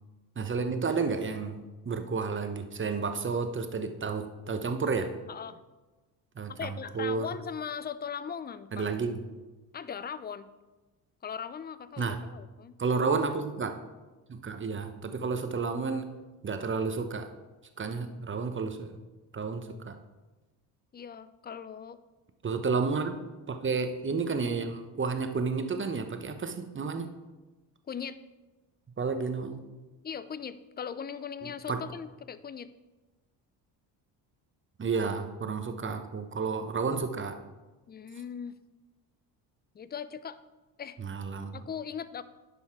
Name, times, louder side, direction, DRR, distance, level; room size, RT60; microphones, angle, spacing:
voice 1, 0.4-5.1 6.4-7.3 8.7-9.2 12.0-12.2 12.8-13.8 14.3-16.1 16.4-17.3 17.8-19.0 19.3-20.0 22.4-23.2 23.5-27.1 29.0-29.6 31.7-31.8 34.8-37.4 41.0-41.6, right 4 dB, 25° right, 8 dB, 1.1 m, -31 dB
voice 2, 5.3-5.6 6.5-8.9 9.7-10.5 11.2-12.8 20.9-22.0 27.9-28.2 30.0-32.7 37.9-38.5 39.7-40.4 40.8-41.0 41.5-42.2, left 7 dB, 20° left, 15 dB, 0.5 m, -39 dB
10.0 x 5.5 x 4.7 m, 1.2 s
supercardioid pair, 70°, 47 cm